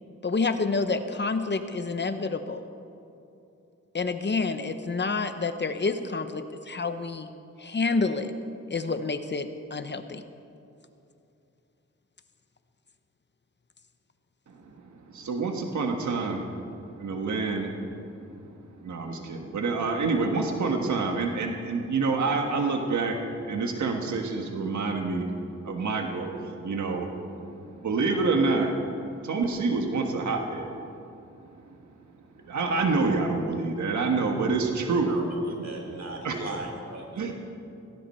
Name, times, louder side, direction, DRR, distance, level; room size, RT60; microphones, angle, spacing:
voice 1, 0.2-2.6 3.9-7.3 7.6-8.3 8.7-10.2, left 4 dB, 40° left, 9 dB, 0.9 m, -28 dB
voice 2, 15.1-16.7 16.9-18.4 18.8-25.2 25.6-27.1 27.5-28.7 29.2-30.8 31.5-31.6 32.5-35.1 36.2-36.4 37.2-37.3, right 3 dB, 85° right, 3 dB, 1.5 m, -27 dB
voice 3, 35.1-37.3, right 2 dB, 65° right, 1 dB, 3.4 m, -38 dB
17.5 x 17.0 x 4.4 m, 2.7 s
wide cardioid pair, 105°, 29 cm